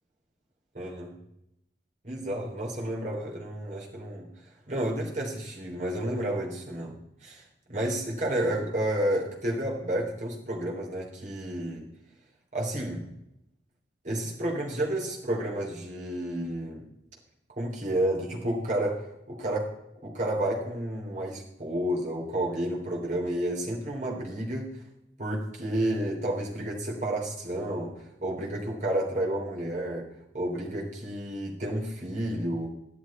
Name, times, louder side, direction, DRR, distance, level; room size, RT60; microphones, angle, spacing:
voice 1, 0.7-1.1 2.0-4.3 4.7-6.9 7.2-11.9 12.5-13.1 14.0-16.9 17.6-19.7 20.0-24.7 25.2-27.9 28.2-30.0 30.3-32.7, right 1 dB, 45° right, -3 dB, 3.4 m, -31 dB
12.5 x 11.5 x 4.3 m, 0.84 s
head